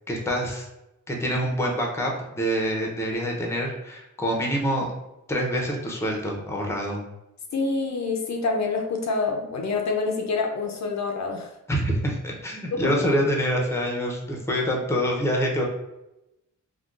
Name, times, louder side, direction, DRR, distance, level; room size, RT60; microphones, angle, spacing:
voice 1, 0.1-0.7 1.1-4.9 5.3-7.0 11.7-15.6, equal, 10° left, -1 dB, 0.6 m, -26 dB
voice 2, 7.5-11.5 12.7-13.0, left 4 dB, 60° left, 2 dB, 0.5 m, -26 dB
3.6 x 2.2 x 2.4 m, 0.92 s
cardioid pair, 90°, 32 cm